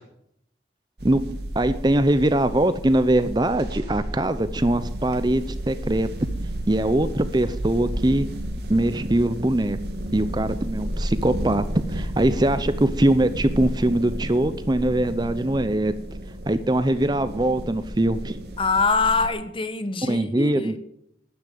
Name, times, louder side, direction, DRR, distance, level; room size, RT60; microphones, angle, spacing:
voice 1, 1.0-6.1 6.7-8.3 8.7-9.8 10.1-15.9 16.5-18.4 20.1-20.8, right 1 dB, 25° right, 0.7 m, -22 dB
sound 1, 1.0-19.3, right 1 dB, 60° right, 2.2 m, -32 dB
voice 2, 18.6-20.8, left 4 dB, 30° left, 1.1 m, -24 dB
12.0 x 10.0 x 9.2 m
head